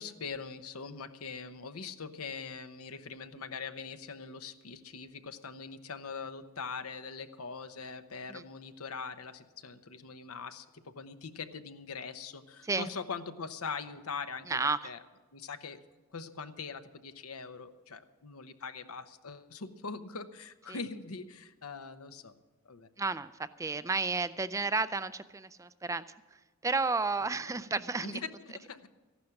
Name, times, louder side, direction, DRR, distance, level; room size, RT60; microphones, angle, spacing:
voice 1, 0.0-14.6 14.8-15.0 15.3-15.8 16.1-22.3 22.7-22.9 28.0-28.2 28.7-28.9, left 5 dB, 85° left, 10 dB, 0.9 m, -42 dB
voice 2, 14.5-14.9 20.7-20.8 23.0-28.2, right 4 dB, 15° right, 13 dB, 0.3 m, -32 dB
14.5 x 11.5 x 5.9 m, 1.2 s
head